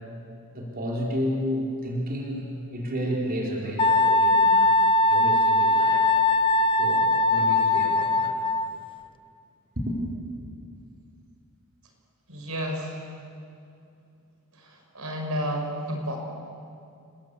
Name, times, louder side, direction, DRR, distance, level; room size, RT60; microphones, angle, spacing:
voice 1, 0.5-4.8 5.0-6.1 6.8-8.3 9.8-10.0, equal, 45° right, -2 dB, 4.4 m, -31 dB
Wind instrument woodwind instrument, 3.8-8.8, left 2 dB, 25° left, 0.7 m, -21 dB
voice 2, 12.3-13.0 14.9-16.2, equal, 80° right, 2 dB, 5.1 m, -30 dB
29.5 x 21.0 x 8.6 m, 2.4 s
head